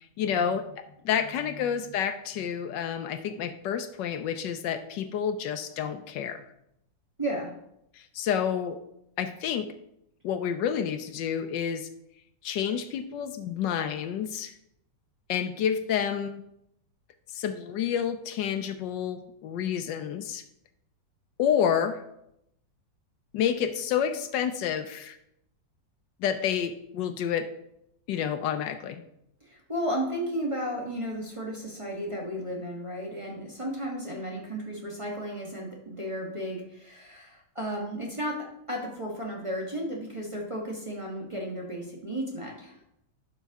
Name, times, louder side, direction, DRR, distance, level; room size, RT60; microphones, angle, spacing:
voice 1, 0.2-6.4 7.9-8.8 9.2-9.7 10.2-11.9 12.4-14.5 15.3-16.4 17.3-20.4 21.4-22.0 23.3-25.2 26.2-27.5 28.1-29.0, left 8 dB, 75° left, 10 dB, 1.2 m, -29 dB
voice 2, 7.2-7.5 29.4-42.8, equal, 20° right, -3 dB, 1.2 m, -34 dB
11.5 x 5.6 x 3.5 m, 0.79 s
omnidirectional pair, 2.0 m